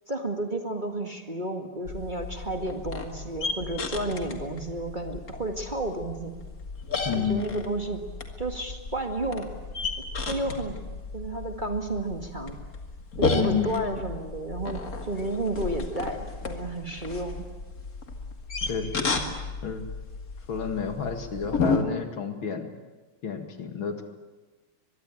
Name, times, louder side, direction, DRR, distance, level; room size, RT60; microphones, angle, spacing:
voice 1, 0.1-6.3 7.1-8.0 8.4-9.5 10.3-10.7 11.1-12.6 13.2-17.4, right 2 dB, 25° right, 4 dB, 1.8 m, -32 dB
sound 1, 1.8-21.8, left 3 dB, 40° left, 2.5 m, -33 dB
voice 2, 7.0-7.6 13.3-13.8 18.7-19.2 19.6-19.9 20.5-22.7 23.2-24.1, left 7 dB, 65° left, 7 dB, 2.8 m, -30 dB
23.5 x 22.0 x 9.1 m, 1.2 s
omnidirectional pair, 2.4 m